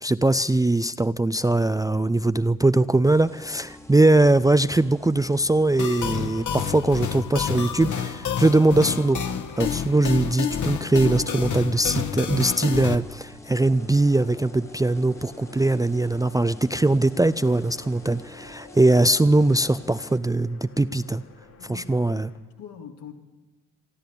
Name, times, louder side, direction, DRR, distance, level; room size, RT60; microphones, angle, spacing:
voice 1, 0.0-9.2 9.6-21.2 21.7-22.3, right 2 dB, 10° right, 13 dB, 0.6 m, -21 dB
sound 1, 3.0-20.2, left 1 dB, 5° left, 1.5 m, -47 dB
sound 2, 5.8-12.9, left 8 dB, 45° left, 1.5 m, -29 dB
sound 3, 13.5-22.4, left 5 dB, 85° left, 3.6 m, -51 dB
voice 2, 21.6-23.1, left 7 dB, 70° left, 1 dB, 3.0 m, -44 dB
24.5 x 13.0 x 8.4 m, 1.2 s
hypercardioid pair, 45°, 42 cm